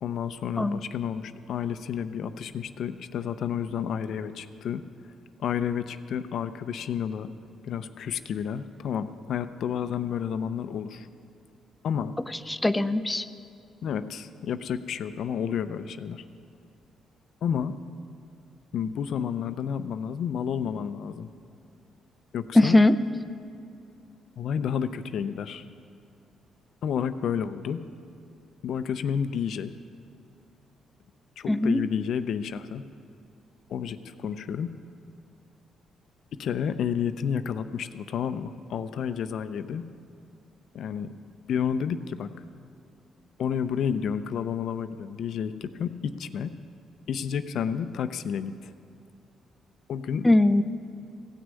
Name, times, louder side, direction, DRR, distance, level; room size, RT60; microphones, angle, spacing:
voice 1, 0.0-4.8 5.4-7.3 7.6-11.1 11.8-12.2 13.8-16.2 17.4-17.7 18.7-21.3 22.3-22.8 24.4-25.7 26.8-27.8 28.6-29.7 31.4-32.8 33.7-34.7 36.4-39.8 40.7-41.1 41.5-42.3 43.4-46.5 47.1-48.7 49.9-50.3, left 8 dB, 70° left, 12 dB, 0.5 m, -30 dB
voice 2, 12.5-13.3 22.6-23.0 31.5-31.8 50.2-50.6, left 2 dB, 10° left, 13 dB, 0.5 m, -20 dB
16.0 x 6.3 x 8.3 m, 2.5 s
cardioid pair, 90°, 0 cm